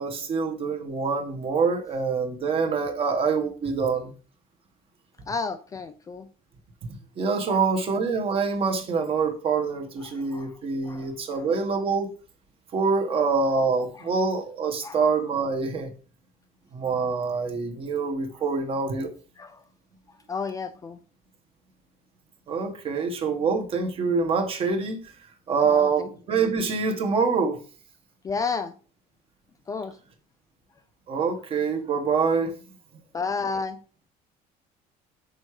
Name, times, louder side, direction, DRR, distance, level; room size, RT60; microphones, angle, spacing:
voice 1, 0.0-4.1 7.2-12.1 12.7-15.9 16.7-19.1 22.5-25.0 25.5-27.6 31.1-32.5, right 5 dB, 35° right, 1.3 m, -25 dB
voice 2, 5.3-6.3 7.5-7.6 10.0-10.5 10.8-11.5 14.8-15.0 19.4-19.6 20.3-21.0 25.7-26.1 26.4-26.5 28.2-28.7 29.7-30.0 33.1-33.8, left 4 dB, 20° left, 0.4 m, -32 dB
6.5 x 4.8 x 4.8 m
cardioid pair, 165°, 16 cm